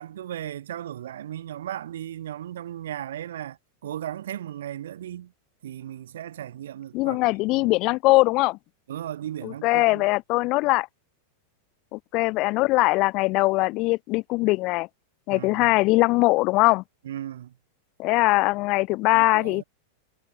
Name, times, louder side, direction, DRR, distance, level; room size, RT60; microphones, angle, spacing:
voice 1, 0.0-5.3 5.6-7.2 7.5-7.9 8.9-10.1 15.3-15.7 17.0-17.5 19.1-19.6, right 11 dB, 60° right, 6.1 m, -36 dB
voice 2, 6.9-8.6 9.4-10.9 11.9-14.9 15.3-16.8 18.0-19.6, left 22 dB, 40° left, 0.5 m, -21 dB
figure-of-eight pair, 90°, 0 cm